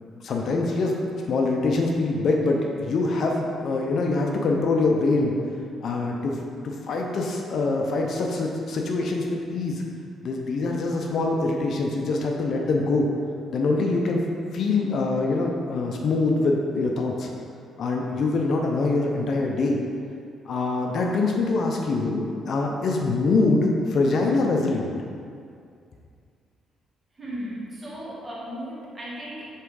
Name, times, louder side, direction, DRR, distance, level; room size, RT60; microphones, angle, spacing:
voice 1, 0.2-5.3 5.8-6.4 6.6-9.8 10.2-13.1 13.5-14.2 14.5-17.3 17.8-19.8 20.5-24.9, left 3 dB, 55° left, 1 dB, 0.6 m, -24 dB
voice 2, 27.2-29.5, equal, 25° right, -6 dB, 1.4 m, -36 dB
5.7 x 3.5 x 4.7 m, 2.3 s
cardioid pair, 140°, 0 cm